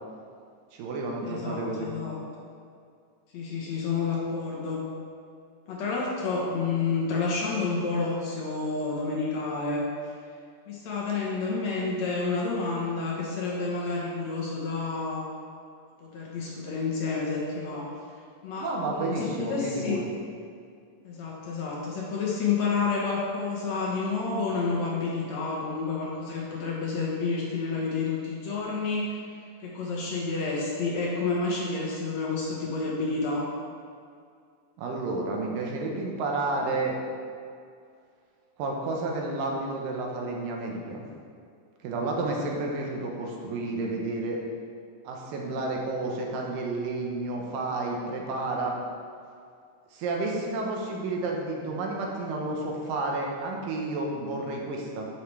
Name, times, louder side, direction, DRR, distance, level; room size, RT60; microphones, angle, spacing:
voice 1, 0.7-1.9 18.6-20.0 34.8-37.0 38.6-41.1 41.8-44.4 45.0-48.8 49.9-55.1, right 2 dB, 85° right, 0 dB, 2.7 m, -31 dB
voice 2, 1.2-2.5 3.3-4.8 5.7-9.9 10.7-15.3 16.0-17.9 18.4-20.0 21.1-29.2 29.6-33.5, left 4 dB, 65° left, -3 dB, 2.0 m, -29 dB
11.0 x 5.9 x 3.3 m, 2.3 s
omnidirectional pair, 3.9 m